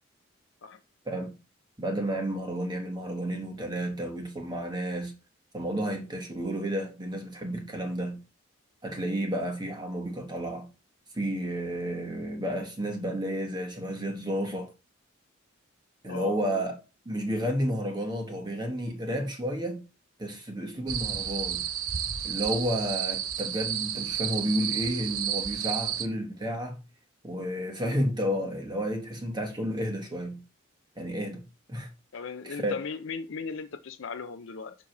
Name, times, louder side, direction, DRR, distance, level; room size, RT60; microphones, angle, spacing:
voice 1, 1.8-5.1 5.5-8.2 8.8-10.7 11.1-14.7 16.0-16.7 17.0-19.8 20.2-21.6 22.2-26.8 27.2-30.4 31.0-31.4 31.7-31.9 32.4-32.7, equal, 20° right, 1.2 m, -31 dB
voice 2, 16.1-16.6 32.1-34.8, left 5 dB, 65° left, 0.5 m, -37 dB
sound 1, 20.9-26.1, right 9 dB, 85° right, 0.9 m, -31 dB
8.5 x 2.9 x 5.9 m
head